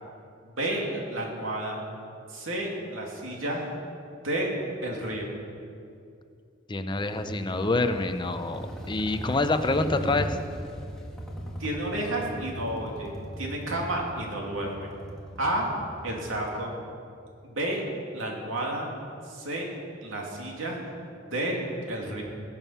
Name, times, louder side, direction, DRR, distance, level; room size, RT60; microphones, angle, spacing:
voice 1, 0.5-1.8 2.3-3.6 4.2-4.5 4.8-5.3 11.6-14.9 15.4-15.7 16.0-16.7 17.4-17.8 18.1-18.9 19.3-19.7 20.0-20.8 21.3-21.6 21.9-22.2, right 1 dB, 90° right, -1 dB, 2.7 m, -31 dB
voice 2, 6.7-10.4, left 2 dB, 25° left, 9 dB, 0.6 m, -26 dB
sound 1, 6.9-16.6, equal, 5° left, 1.6 m, -39 dB
20.5 x 7.3 x 5.7 m, 2.5 s
head